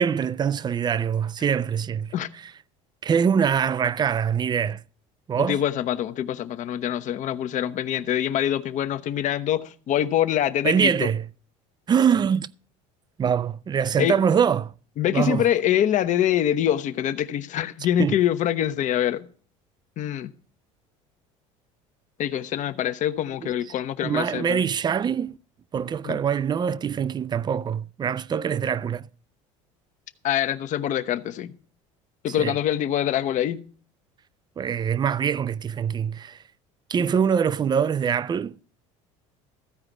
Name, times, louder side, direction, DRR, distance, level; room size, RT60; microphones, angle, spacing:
voice 1, 0.0-2.1 3.0-4.8 5.3-5.6 10.6-11.3 11.9-12.5 13.2-14.7 15.1-15.5 18.0-18.1 23.4-23.5 24.0-25.4 25.7-29.1 32.4-32.6 34.6-36.4 36.9-38.6, right 7 dB, 25° right, 0.4 m, -24 dB
voice 2, 5.4-11.1 14.0-14.2 15.0-19.2 20.0-20.3 22.2-24.6 26.0-26.2 30.2-31.5 32.2-33.6, left 11 dB, 50° left, 0.8 m, -24 dB
14.5 x 4.9 x 7.9 m
supercardioid pair, 85°, 16 cm